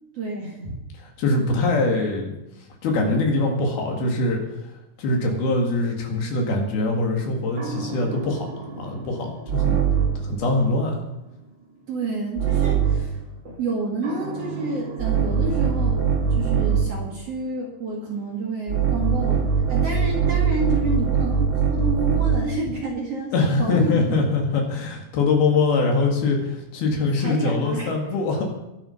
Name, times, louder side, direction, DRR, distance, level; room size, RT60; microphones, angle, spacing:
voice 1, 0.1-0.8 11.9-24.0 27.2-27.9, right 2 dB, 50° right, -1 dB, 2.3 m, -29 dB
voice 2, 1.2-2.4 2.8-4.4 5.0-9.8 10.2-11.0 23.3-28.4, left 3 dB, 70° left, 1 dB, 4.1 m, -23 dB
sound 1, 7.6-10.3 12.4-13.2 14.0-17.0 18.7-22.6, right 7 dB, 70° right, 1.1 m, -23 dB
21.0 x 7.3 x 5.7 m, 0.94 s
omnidirectional pair, 4.6 m